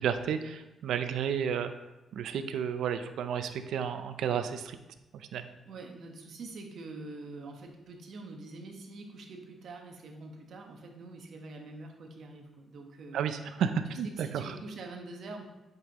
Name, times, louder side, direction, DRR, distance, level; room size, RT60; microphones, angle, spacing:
voice 1, 0.0-1.7 2.1-4.8 5.1-5.5 13.1-14.5, right 8 dB, 80° right, 9 dB, 0.5 m, -32 dB
voice 2, 5.6-13.3 13.9-15.4, right 3 dB, 60° right, 2 dB, 1.2 m, -45 dB
8.1 x 5.4 x 3.0 m, 1.0 s
cardioid pair, 115°, 0 cm